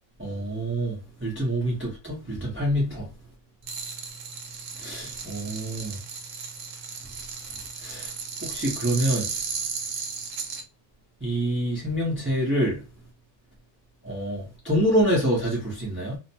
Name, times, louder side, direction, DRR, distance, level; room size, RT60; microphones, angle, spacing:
voice 1, 0.2-0.9 1.2-3.1 4.8-5.9 7.8-8.1 8.5-9.3 11.2-12.8 14.0-16.2, equal, 10° right, 0.6 m, -26 dB
sound 1, 3.6-10.6, right 5 dB, 70° right, 0.9 m, -35 dB
2.6 x 2.1 x 2.7 m
omnidirectional pair, 1.5 m